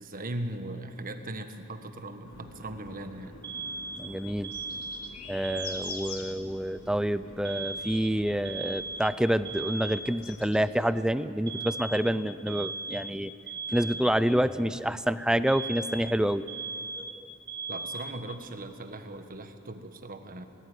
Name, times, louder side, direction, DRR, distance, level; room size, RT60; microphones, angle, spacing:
voice 1, 0.0-3.4 17.7-20.4, right 2 dB, 40° right, 7 dB, 1.4 m, -39 dB
sound 1, 2.2-10.6, left 4 dB, 85° left, 2.6 m, -47 dB
Alarm, 3.4-6.4 7.4-10.4 11.5-14.4 15.5-18.4, right 4 dB, 20° right, 2.8 m, -38 dB
voice 2, 4.0-4.5 5.3-13.3 13.7-16.4 17.0-17.1, equal, 5° right, 14 dB, 0.4 m, -28 dB
19.5 x 14.5 x 9.9 m, 3.0 s
head